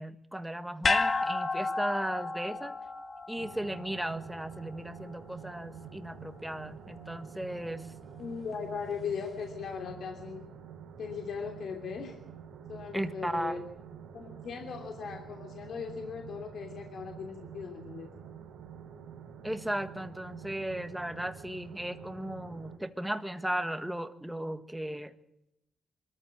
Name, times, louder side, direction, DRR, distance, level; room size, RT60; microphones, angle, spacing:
voice 1, 0.0-2.7 3.3-7.8 12.9-13.6 19.4-25.1, right 1 dB, 5° right, 9 dB, 1.7 m, -36 dB
sound 1, 0.8-5.2 5.5-5.6, left 3 dB, 40° left, 2.1 m, -32 dB
sound 2, 3.4-22.8, right 8 dB, 85° right, 3.9 m, -48 dB
voice 2, 8.2-10.4 11.0-12.2 12.7-13.6 14.1-18.1, left 6 dB, 70° left, 2 dB, 3.0 m, -38 dB
24.0 x 14.0 x 8.8 m, 0.85 s
cardioid pair, 90°, 0 cm